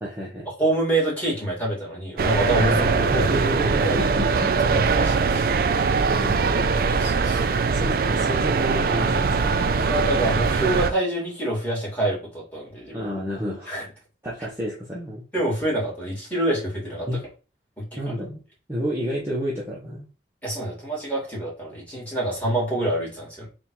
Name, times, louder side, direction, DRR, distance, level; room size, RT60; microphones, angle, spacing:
voice 1, 0.0-0.5 3.1-5.0 6.2-6.7 7.6-9.6 12.9-13.8 14.2-15.2 17.1-17.2 18.0-18.4 18.7-20.1, equal, 15° right, -6 dB, 0.8 m, -30 dB
voice 2, 0.6-3.2 3.8-4.1 4.7-6.3 7.0-7.4 9.9-13.1 13.7-13.9 15.3-17.1 17.8-18.1 20.4-23.5, right 1 dB, 10° left, -5 dB, 1.9 m, -26 dB
sound 1, 2.2-10.9, right 4 dB, 50° right, 0.3 m, -22 dB
3.7 x 2.5 x 4.5 m, 0.34 s
head